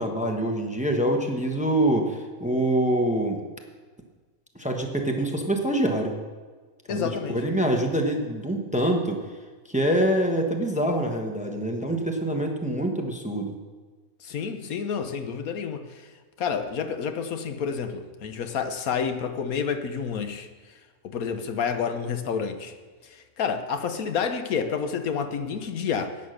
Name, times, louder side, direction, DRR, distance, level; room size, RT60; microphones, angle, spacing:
voice 1, 0.0-3.4 4.6-6.1 6.9-9.2 9.7-13.5, right 1 dB, 5° right, 3 dB, 0.9 m, -25 dB
voice 2, 6.9-7.4 14.2-16.1 16.4-20.5 21.0-22.7 23.0-26.1, left 6 dB, 75° left, 8 dB, 1.3 m, -29 dB
11.0 x 9.3 x 6.6 m, 1.4 s
omnidirectional pair, 1.5 m